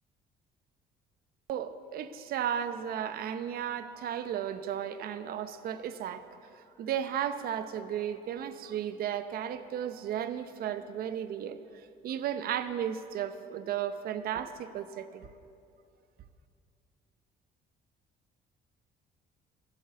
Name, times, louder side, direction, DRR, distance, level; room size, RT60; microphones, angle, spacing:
voice 1, 1.5-6.2 6.8-11.6 12.0-15.3, right 9 dB, 65° right, 11 dB, 0.7 m, -34 dB
12.5 x 7.6 x 8.3 m, 2.5 s
cardioid pair, 110°, 17 cm